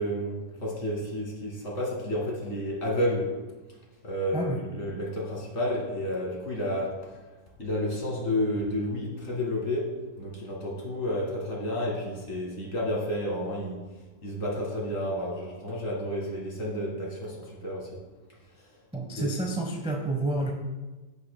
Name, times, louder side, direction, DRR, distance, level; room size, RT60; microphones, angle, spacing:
voice 1, 0.0-3.3 4.0-6.9 7.6-9.9 10.2-13.8 14.2-18.0 19.1-19.3, left 1 dB, 45° left, -3 dB, 2.2 m, -31 dB
voice 2, 18.9-20.5, right 2 dB, 10° right, 1 dB, 0.4 m, -29 dB
15.5 x 5.6 x 2.2 m, 1.2 s
omnidirectional pair, 1.8 m